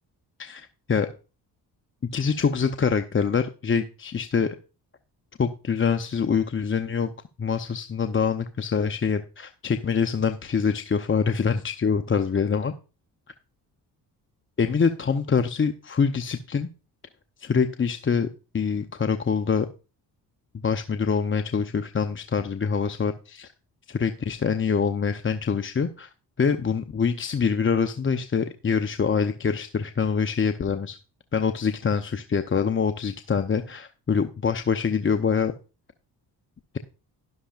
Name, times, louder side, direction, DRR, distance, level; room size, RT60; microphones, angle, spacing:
voice 1, 0.4-1.1 2.1-4.5 5.4-7.1 7.4-12.7 14.6-16.7 17.4-18.3 18.5-19.7 20.6-23.5 23.9-26.1 26.4-31.0 31.3-35.5, left 6 dB, 30° left, 8 dB, 0.7 m, -25 dB
11.5 x 11.0 x 2.5 m, 0.33 s
supercardioid pair, 55°, 44 cm